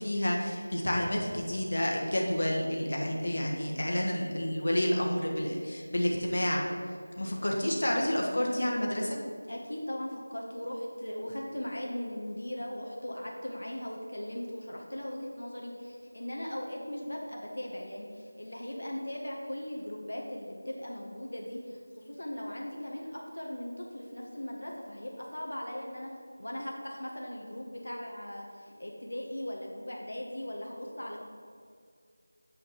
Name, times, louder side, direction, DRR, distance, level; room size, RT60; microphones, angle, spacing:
voice 1, 0.0-6.6 7.2-9.2, left 1 dB, 60° left, -1 dB, 1.5 m, -29 dB
voice 2, 9.5-26.1 26.4-31.2, left 1 dB, 80° left, -1 dB, 1.4 m, -39 dB
8.5 x 5.2 x 5.7 m, 2.2 s
figure-of-eight pair, 170°, 0 cm